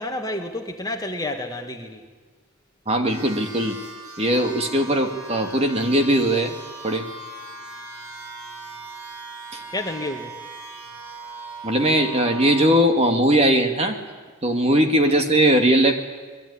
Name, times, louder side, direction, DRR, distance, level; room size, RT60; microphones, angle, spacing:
voice 1, 0.0-2.0 9.7-10.4 15.1-15.2, left 2 dB, 15° left, 4 dB, 2.0 m, -30 dB
voice 2, 2.9-3.8 4.2-6.5 6.8-7.1 9.5-9.6 11.6-14.0 14.4-15.9, right 1 dB, 30° right, 5 dB, 2.1 m, -19 dB
sound 1, 3.1-12.7, right 3 dB, 80° right, 6.8 m, -39 dB
26.0 x 21.5 x 9.9 m, 1.4 s
head